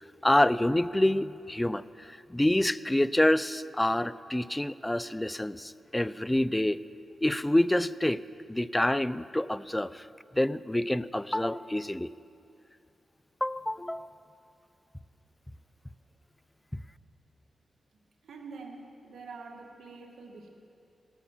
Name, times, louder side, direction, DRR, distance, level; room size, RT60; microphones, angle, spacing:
voice 1, 0.2-6.8 7.2-8.2 8.5-10.1 10.3-12.1 13.4-14.2 16.7-16.8, left 1 dB, 10° left, 17 dB, 0.4 m, -27 dB
voice 2, 18.2-20.5, right 4 dB, 85° right, 1 dB, 2.0 m, -46 dB
18.0 x 9.9 x 7.4 m, 2.5 s
cardioid pair, 65°, 0 cm